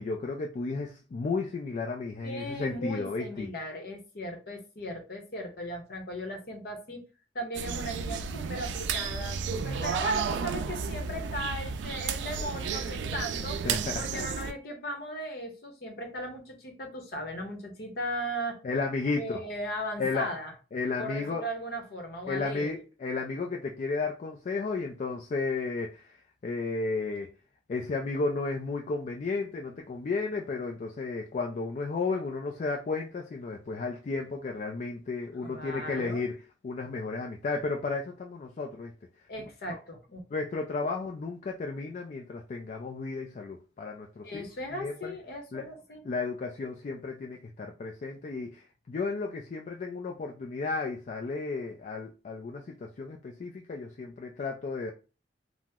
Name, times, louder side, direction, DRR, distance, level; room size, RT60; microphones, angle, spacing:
voice 1, 0.0-3.5 13.6-14.2 18.6-19.4 20.0-20.3 20.7-21.4 22.3-26.1 26.4-27.3 27.7-36.3 36.6-38.9 40.3-44.4 44.8-45.1 45.5-45.6 46.0-54.9, left 3 dB, 45° left, 0.3 m, -33 dB
voice 2, 2.2-7.0 7.3-13.6 13.9-18.6 19.2-20.5 21.0-22.7 35.4-36.2 39.3-40.2 44.2-46.0, equal, 60° left, 0.9 m, -37 dB
sound 1, 7.5-14.5, right 6 dB, 85° right, 0.3 m, -32 dB
2.8 x 2.0 x 3.5 m
head